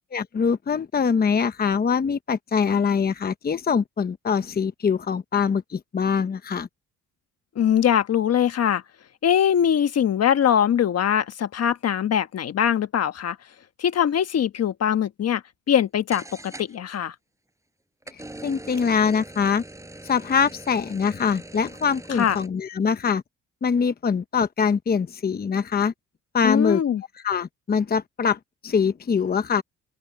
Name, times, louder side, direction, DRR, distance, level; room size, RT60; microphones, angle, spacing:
voice 1, 0.1-6.7 18.1-19.6 20.0-23.2 23.6-25.9 26.3-26.8 27.2-29.6, left 6 dB, 30° left, 0.9 m, -23 dB
voice 2, 7.6-8.8 9.2-13.4 13.8-15.4 15.7-17.1 22.2-22.4 26.4-27.0, left 9 dB, 55° left, 1.3 m, -22 dB
sound 1, 15.8-15.9 16.1-17.0 18.0-22.5, right 1 dB, 10° right, 5.9 m, -42 dB
open air
cardioid pair, 90°, 30 cm